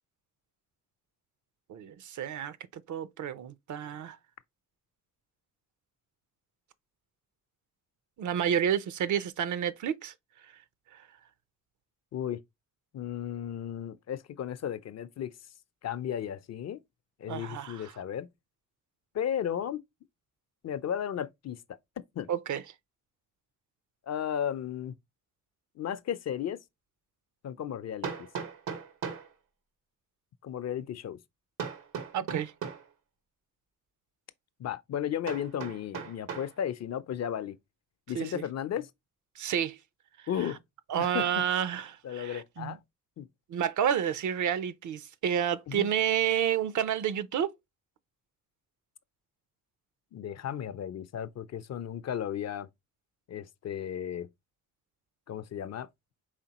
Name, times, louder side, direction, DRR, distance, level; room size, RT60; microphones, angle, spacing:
voice 1, 1.7-4.2 8.2-10.1 10.9-11.0 17.3-17.9 22.3-22.6 32.1-32.5 38.1-38.4 39.4-39.8 40.9-42.8 43.5-47.5, right 9 dB, 65° right, 0.6 m, -30 dB
voice 2, 12.9-15.3 15.8-16.8 17.2-18.3 19.1-19.8 20.6-21.6 22.2-22.3 24.1-25.0 25.8-26.6 27.4-28.3 30.4-31.2 34.6-37.6 38.1-38.9 40.3-40.6 41.0-41.4 42.0-42.8 43.2-43.3 45.7-45.9 50.1-52.7 53.3-54.3 55.3-55.9, left 9 dB, 55° left, 0.5 m, -34 dB
Hammer, 26.4-26.5 28.0-29.3 31.6-32.9 35.3-36.5, right 6 dB, 90° right, 1.2 m, -38 dB
4.9 x 3.5 x 2.9 m
cardioid pair, 85°, 32 cm